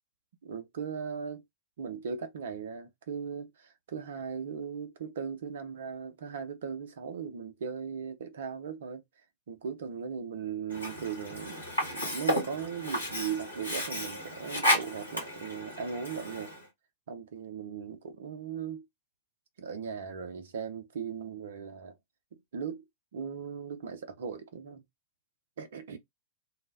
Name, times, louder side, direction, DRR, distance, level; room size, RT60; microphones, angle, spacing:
voice 1, 0.4-1.4 1.8-9.0 9.5-11.6 11.9-16.5 17.1-18.9 19.6-21.9 22.5-22.8 23.1-24.8 25.6-26.0, right 6 dB, 60° right, 0.5 m, -38 dB
Sink (filling or washing), 10.7-16.7, equal, 85° left, 1.2 m, -33 dB
2.3 x 2.1 x 3.2 m
figure-of-eight pair, 90°, 0 cm